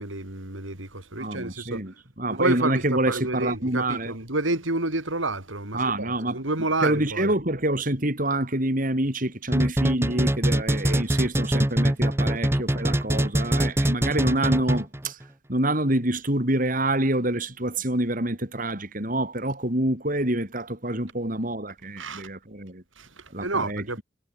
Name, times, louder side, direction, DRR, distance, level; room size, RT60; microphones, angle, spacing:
voice 1, 0.0-1.8 2.3-7.3 22.0-22.2 23.0-24.0, right 2 dB, 85° right, 5.6 m, -29 dB
voice 2, 1.2-4.1 5.7-6.4 6.8-15.2 15.5-22.8 23.3-24.0, right 1 dB, 45° right, 4.4 m, -26 dB
sound 1, 9.5-15.0, right 1 dB, 15° right, 0.9 m, -23 dB
head